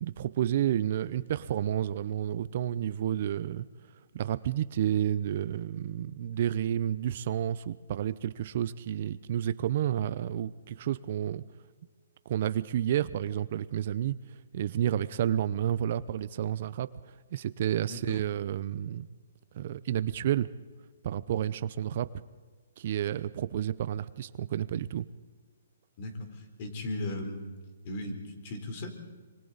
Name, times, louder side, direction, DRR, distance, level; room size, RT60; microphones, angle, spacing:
voice 1, 0.0-3.7 4.1-11.4 12.3-14.1 14.5-19.1 19.5-20.5 21.0-22.1 22.8-25.1, right 10 dB, 45° right, 16 dB, 0.7 m, -30 dB
voice 2, 17.9-18.2 26.0-27.4 27.8-28.9, left 1 dB, 40° left, 6 dB, 4.0 m, -37 dB
26.0 x 24.5 x 4.1 m, 1.4 s
hypercardioid pair, 155°, 0 cm